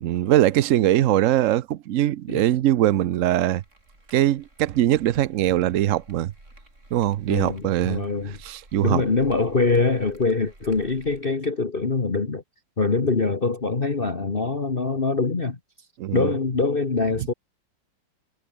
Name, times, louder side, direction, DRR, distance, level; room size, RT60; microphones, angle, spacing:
voice 1, 0.0-3.6 4.1-6.3 6.9-8.1 8.4-9.0 16.0-16.3, right 13 dB, 70° right, 0.7 m, -21 dB
sound 1, 3.5-11.3, right 1 dB, 40° right, 7.3 m, -50 dB
voice 2, 7.3-8.4 8.8-12.4 12.8-15.6 16.1-17.3, left 3 dB, 30° left, 1.8 m, -24 dB
omnidirectional pair, 2.0 m